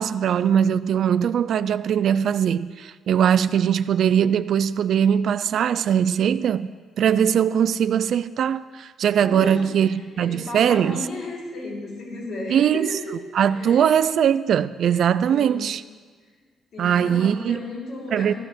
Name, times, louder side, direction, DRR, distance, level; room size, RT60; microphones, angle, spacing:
voice 1, 0.0-6.7 7.0-11.0 12.5-12.9 13.3-15.8 16.8-17.6 18.1-18.3, right 8 dB, 65° right, 0.4 m, -21 dB
voice 2, 9.2-13.1 13.5-13.9 15.2-15.7 16.7-18.4, left 2 dB, 65° left, 5.6 m, -34 dB
14.0 x 13.0 x 6.3 m
cardioid pair, 90°, 0 cm